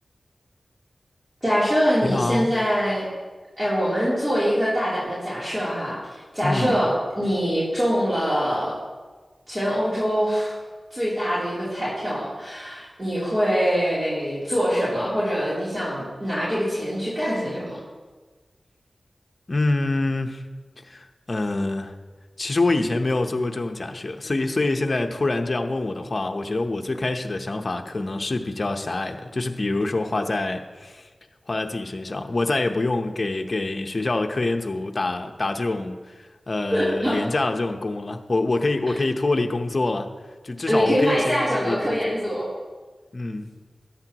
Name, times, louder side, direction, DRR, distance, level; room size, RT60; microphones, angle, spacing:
voice 1, 1.4-3.1 3.6-6.0 6.3-8.8 9.5-10.5 10.9-17.8 36.7-37.2 40.7-42.5, equal, 25° right, -9 dB, 3.2 m, -24 dB
voice 2, 2.0-2.5 6.4-6.8 19.5-20.4 20.9-21.9 22.4-31.1 31.5-36.0 36.5-40.1 40.4-42.2 43.1-43.5, left 2 dB, 50° left, 5 dB, 0.8 m, -25 dB
14.0 x 9.8 x 3.0 m, 1.4 s
wide cardioid pair, 55°, 0 cm